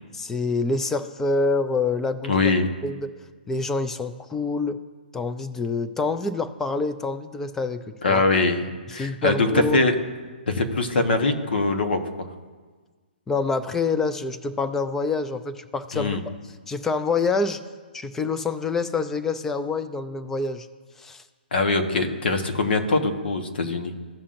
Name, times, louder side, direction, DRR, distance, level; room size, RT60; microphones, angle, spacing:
voice 1, 0.1-2.3 2.8-3.1 3.5-4.8 5.1-8.2 8.9-9.8 13.3-16.2 16.7-17.6 17.9-20.7 21.0-21.2, left 3 dB, 5° left, 10 dB, 0.4 m, -26 dB
voice 2, 2.3-2.7 8.0-9.9 10.5-12.3 15.9-16.2 21.5-23.9, left 3 dB, 70° left, 6 dB, 1.3 m, -22 dB
15.5 x 5.6 x 2.6 m, 1.4 s
hypercardioid pair, 160°, 6 cm